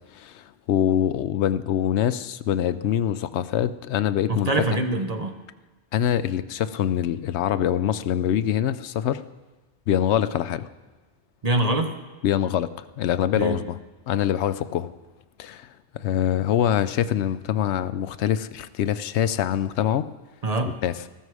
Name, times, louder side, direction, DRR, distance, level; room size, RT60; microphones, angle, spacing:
voice 1, 0.1-4.5 5.9-9.2 9.9-10.7 12.2-13.8 14.1-14.9 15.4-15.7 15.9-20.1 20.8-20.9, left 10 dB, 85° left, 13 dB, 0.9 m, -24 dB
voice 2, 4.3-5.4 11.4-11.9 13.3-13.6 20.4-20.8, right 2 dB, 40° right, 6 dB, 1.0 m, -24 dB
14.0 x 13.0 x 4.8 m, 1.2 s
omnidirectional pair, 1.1 m